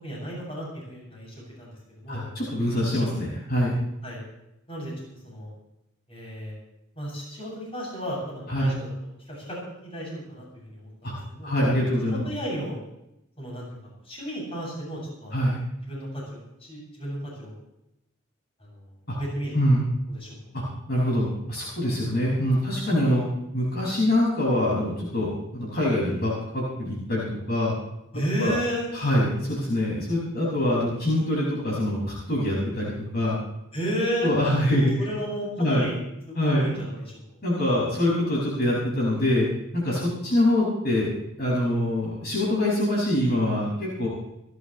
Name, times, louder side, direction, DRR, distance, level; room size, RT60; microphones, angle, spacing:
voice 1, 0.0-2.3 4.0-4.2 4.7-5.5 6.1-6.5 6.9-8.9 9.3-11.5 12.1-12.8 13.4-15.4 15.8-17.5 18.6-19.5 20.1-20.4 28.1-28.9 33.7-34.3 34.8-37.4, equal, 30° left, -4 dB, 7.8 m, -33 dB
voice 2, 2.1-3.7 8.5-8.7 11.0-11.1 11.4-12.2 15.3-15.6 19.1-19.2 19.5-19.8 20.5-20.6 20.9-23.2 23.5-27.7 28.4-28.5 28.9-33.4 34.2-34.9 35.6-35.9 36.3-36.7 37.4-39.5 39.7-41.1 41.4-44.1, left 1 dB, 50° left, -5 dB, 6.2 m, -24 dB
29.5 x 12.0 x 3.3 m, 0.85 s
head